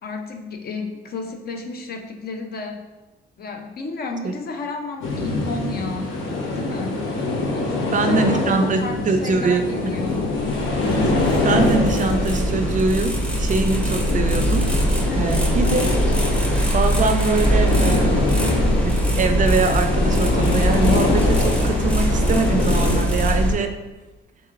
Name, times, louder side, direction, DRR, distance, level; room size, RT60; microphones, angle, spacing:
voice 1, 0.0-2.9 3.4-6.2 6.5-7.0 7.5-10.4 15.1-15.5, left 3 dB, 50° left, 5 dB, 0.5 m, -32 dB
sound 1, 5.0-23.0, left 2 dB, 85° left, 0.8 m, -24 dB
voice 2, 7.9-10.0 11.4-13.1 13.4-15.8 16.7-18.3 18.8-23.7, right 4 dB, 40° right, 7 dB, 0.4 m, -23 dB
sound 2, 10.1-23.5, equal, 5° left, 0.6 m, -22 dB
3.6 x 3.0 x 3.7 m, 1.1 s
cardioid pair, 90°, 20 cm